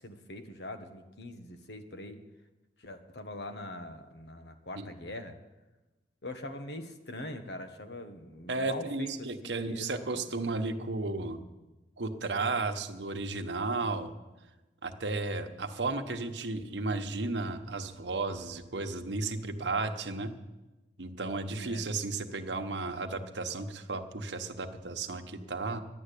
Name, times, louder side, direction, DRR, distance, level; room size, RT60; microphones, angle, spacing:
voice 1, 0.0-2.2 2.8-5.4 6.2-9.1 9.4-10.3 21.5-21.9, left 1 dB, 75° left, 7 dB, 1.4 m, -43 dB
voice 2, 8.5-11.4 12.0-14.1 14.8-20.3 21.0-25.8, right 3 dB, 85° right, 6 dB, 1.2 m, -34 dB
11.0 x 11.0 x 8.4 m, 1.1 s
head